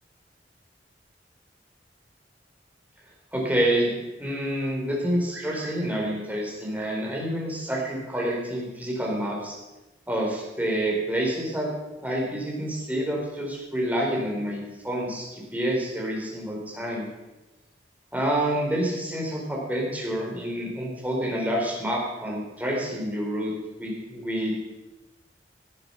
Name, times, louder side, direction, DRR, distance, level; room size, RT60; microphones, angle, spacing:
voice 1, 3.3-9.6 10.1-11.7 12.0-17.0 18.1-23.5 23.8-24.6, right 1 dB, 10° right, -2 dB, 4.3 m, -28 dB
17.0 x 10.0 x 5.9 m, 1.0 s
head